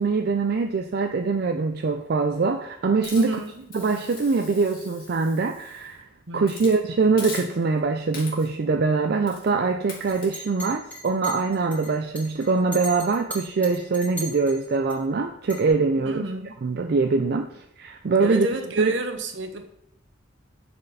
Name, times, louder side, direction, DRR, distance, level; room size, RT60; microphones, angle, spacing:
voice 1, 0.0-3.3 3.7-6.0 6.3-16.2 16.6-18.5 18.8-19.0, right 4 dB, 55° right, 5 dB, 0.4 m, -23 dB
Hiss, 3.0-5.9 6.4-6.8 7.2-7.8 8.1-8.6 9.3-9.5 9.9-10.4, left 4 dB, 55° left, 2.1 m, -41 dB
voice 2, 3.1-3.7 6.3-6.6 16.0-16.5 18.2-19.7, right 2 dB, 70° right, 6 dB, 0.9 m, -30 dB
Chink clink, 10.1-14.9 15.5-15.7, equal, 10° left, 2.9 m, -38 dB
9.8 x 4.4 x 4.1 m, 0.80 s
head